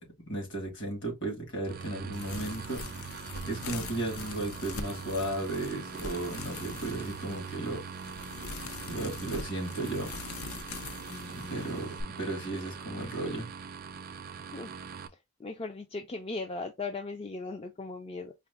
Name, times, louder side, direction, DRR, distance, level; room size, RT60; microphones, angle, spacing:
voice 1, 0.3-3.2 3.5-7.8 8.9-10.1 11.3-13.5, right 2 dB, 50° left, 1.8 m, -35 dB
sound 1, 1.7-15.1, right 6 dB, 40° right, 0.4 m, -42 dB
sound 2, 2.1-12.0, left 4 dB, 75° left, 0.6 m, -43 dB
voice 2, 11.1-11.8 14.5-14.7 15.4-18.3, left 3 dB, 25° left, 0.3 m, -38 dB
4.8 x 2.1 x 3.4 m
head